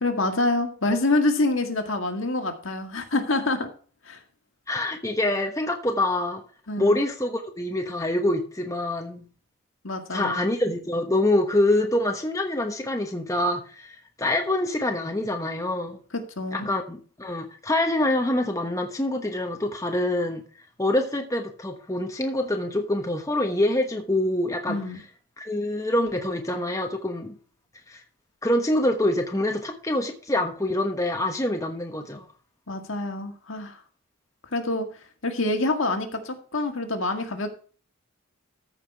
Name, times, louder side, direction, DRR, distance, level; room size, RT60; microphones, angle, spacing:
voice 1, 0.0-3.7 4.1-4.2 6.7-7.0 9.8-10.4 16.4-16.7 24.7-25.0 32.7-33.8 34.5-34.9 35.2-37.6, left 2 dB, 65° left, 1.8 m, -26 dB
voice 2, 4.7-6.4 6.8-9.2 10.1-16.0 16.5-20.4 20.8-25.0 25.4-27.3 27.9-28.0 28.4-32.3, left 1 dB, 15° left, 1.1 m, -25 dB
14.0 x 5.8 x 4.6 m
head